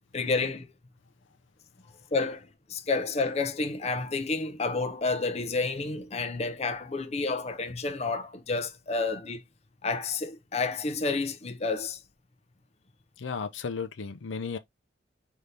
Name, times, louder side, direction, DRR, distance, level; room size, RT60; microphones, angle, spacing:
voice 1, 0.1-0.7 2.1-9.4 9.8-12.0, left 3 dB, 35° left, 0.6 m, -30 dB
voice 2, 13.2-14.6, left 5 dB, 80° left, 0.6 m, -34 dB
5.3 x 2.8 x 3.3 m
head